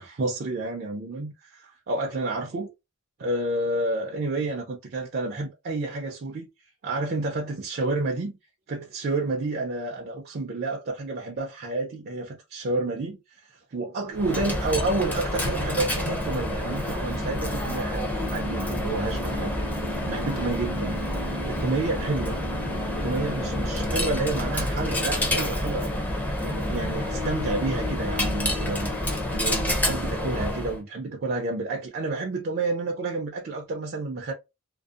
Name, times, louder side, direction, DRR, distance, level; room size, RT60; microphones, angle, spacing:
voice 1, 0.0-2.7 3.2-6.5 6.8-8.4 8.7-19.5 20.1-21.0 21.3-22.4 23.0-26.0 26.4-28.9 29.3-34.3, right 2 dB, 50° right, 0.4 m, -30 dB
Coin (dropping), 14.1-30.8, left 1 dB, 10° left, 0.5 m, -28 dB
2.6 x 2.0 x 2.3 m
head